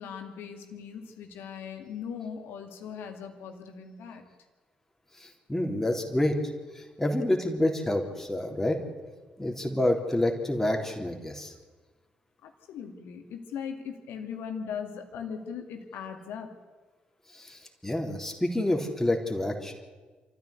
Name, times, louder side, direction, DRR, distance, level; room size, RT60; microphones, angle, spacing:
voice 1, 0.0-4.3 12.4-16.6, left 7 dB, 60° left, 5 dB, 2.4 m, -39 dB
voice 2, 5.5-6.4 6.8-8.8 9.4-11.5 17.3-19.7, left 1 dB, 10° left, 1 dB, 3.6 m, -28 dB
28.0 x 14.0 x 8.2 m, 1.4 s
figure-of-eight pair, 40°, 4 cm